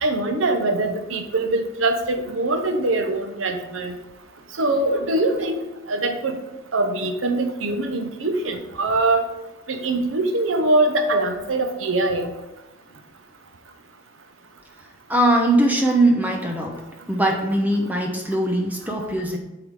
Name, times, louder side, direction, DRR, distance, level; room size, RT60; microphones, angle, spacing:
voice 1, 0.0-4.0 4.6-5.6 5.9-6.4 6.7-9.3 9.7-12.3, right 2 dB, 90° right, 6 dB, 0.9 m, -23 dB
voice 2, 15.1-16.8 17.1-19.4, right 1 dB, 10° right, 1 dB, 0.9 m, -21 dB
8.5 x 3.9 x 4.9 m, 0.99 s
head